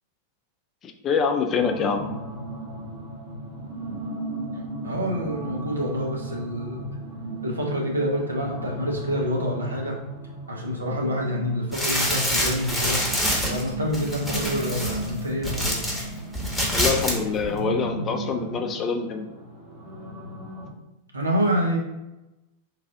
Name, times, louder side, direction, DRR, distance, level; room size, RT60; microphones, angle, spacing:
voice 1, 0.8-2.1 16.7-19.3, left 5 dB, 30° left, 5 dB, 0.4 m, -25 dB
sound 1, 1.6-20.7, right 2 dB, 45° right, 0.9 m, -35 dB
voice 2, 4.8-6.8 7.4-10.0 10.5-13.0 13.4-15.8 21.1-21.8, equal, 80° right, -1 dB, 0.8 m, -27 dB
sound 2, 11.7-16.0 16.3-17.2 17.4-17.5, equal, ahead, 1.0 m, -26 dB
3.2 x 2.4 x 3.6 m, 0.96 s
figure-of-eight pair, 90°, 0 cm